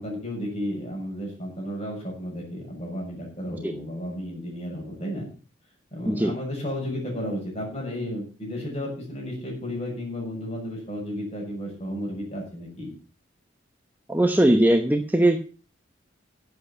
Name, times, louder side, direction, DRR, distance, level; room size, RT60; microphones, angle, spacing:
voice 1, 0.0-5.3 5.9-12.9, equal, 35° left, -1 dB, 6.7 m, -33 dB
voice 2, 14.1-15.4, right 1 dB, 10° right, 6 dB, 0.9 m, -20 dB
11.0 x 8.2 x 7.0 m, 0.37 s
head